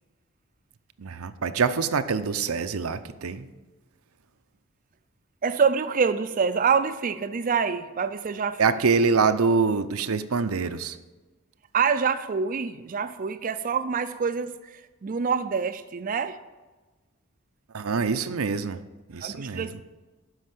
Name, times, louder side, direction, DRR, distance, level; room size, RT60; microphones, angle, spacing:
voice 1, 1.0-3.5 8.6-11.0 17.7-18.8 19.1-19.8, right 5 dB, 85° right, 10 dB, 0.7 m, -25 dB
voice 2, 5.4-8.7 11.7-16.4 19.2-19.8, right 6 dB, 40° right, 10 dB, 0.4 m, -26 dB
12.0 x 5.4 x 7.7 m, 1.2 s
head